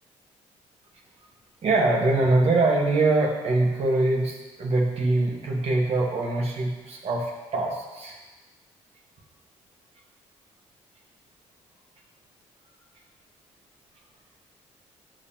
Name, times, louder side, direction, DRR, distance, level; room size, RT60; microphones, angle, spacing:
voice 1, 1.6-8.2, right 2 dB, 55° right, -1 dB, 1.5 m, -23 dB
10.5 x 5.4 x 2.9 m, 1.1 s
cardioid pair, 75°, 13 cm